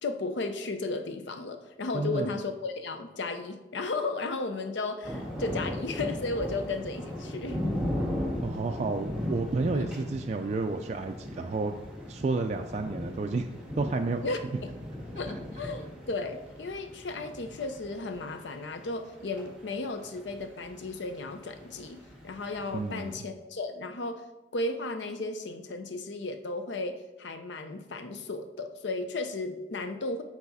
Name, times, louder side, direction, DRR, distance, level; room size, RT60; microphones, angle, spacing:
voice 1, 0.0-7.6 9.7-9.9 14.2-14.7 15.1-24.2 24.5-30.2, left 3 dB, 80° left, 8 dB, 0.6 m, -34 dB
voice 2, 1.9-2.3 8.4-11.7 12.1-13.5 13.8-14.2 22.7-23.2, right 3 dB, 40° right, 4 dB, 0.3 m, -30 dB
sound 1, 5.0-23.1, left 1 dB, 5° right, 1.7 m, -38 dB
7.0 x 4.1 x 4.1 m, 1.1 s
head